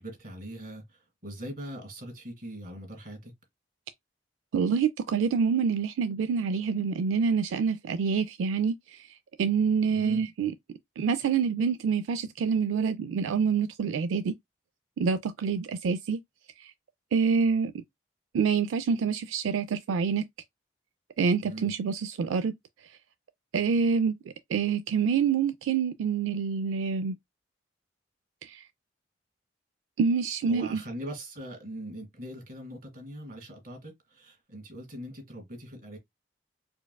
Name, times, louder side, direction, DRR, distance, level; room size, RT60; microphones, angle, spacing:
voice 1, 0.0-3.3 9.9-10.2 21.4-21.7 30.5-36.0, right 1 dB, 45° right, 1.6 m, -41 dB
voice 2, 4.5-9.1 9.4-10.5 11.0-14.3 15.0-16.2 16.6-16.7 17.1-17.7 18.3-20.2 21.2-22.5 23.5-24.1 24.5-27.2 28.4-28.7 30.0-30.8, right 6 dB, 85° right, 0.3 m, -26 dB
4.6 x 2.3 x 2.2 m
head